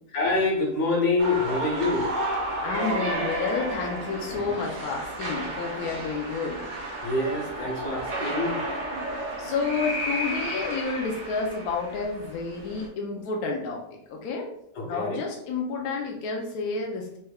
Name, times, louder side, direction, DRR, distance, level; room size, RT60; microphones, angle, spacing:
voice 1, 0.1-2.1 7.0-8.6 14.7-15.2, left 2 dB, 90° left, -2 dB, 1.6 m, -26 dB
sound 1, 1.2-12.9, right 1 dB, 55° right, 1.0 m, -32 dB
voice 2, 2.6-6.6 9.4-13.8 14.1-14.5 14.8-17.2, left 4 dB, 75° left, 0 dB, 1.1 m, -30 dB
4.2 x 3.3 x 2.3 m, 0.74 s
omnidirectional pair, 1.7 m